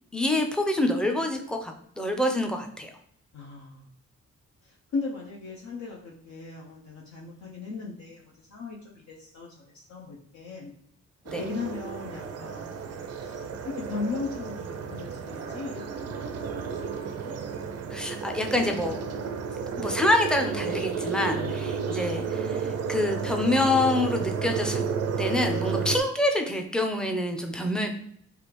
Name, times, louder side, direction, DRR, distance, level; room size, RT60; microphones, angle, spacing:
voice 1, 0.1-2.9 11.3-11.4 17.9-19.0 19.8-24.8 25.2-27.9, left 1 dB, 5° left, 3 dB, 0.5 m, -26 dB
voice 2, 3.3-3.9 4.6-10.7 11.4-13.4 13.7-16.1 16.5-16.9 17.2-17.3 21.3-21.5, left 4 dB, 65° left, -2 dB, 0.6 m, -37 dB
sound 1, 11.3-26.0, right 6 dB, 55° right, 0.4 m, -32 dB
3.3 x 2.4 x 3.0 m, 0.66 s
cardioid pair, 75°, 30 cm